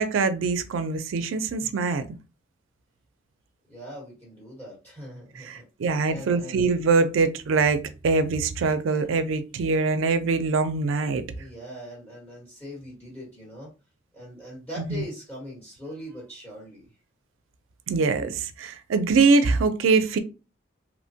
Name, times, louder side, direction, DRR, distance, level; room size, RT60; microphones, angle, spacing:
voice 1, 0.0-2.0 5.4-11.2 14.9-15.0 17.9-20.2, right 4 dB, 80° right, 0.4 m, -23 dB
voice 2, 3.7-6.6 11.3-13.7 14.1-16.9, equal, 15° left, 1.0 m, -41 dB
3.0 x 2.1 x 2.6 m
head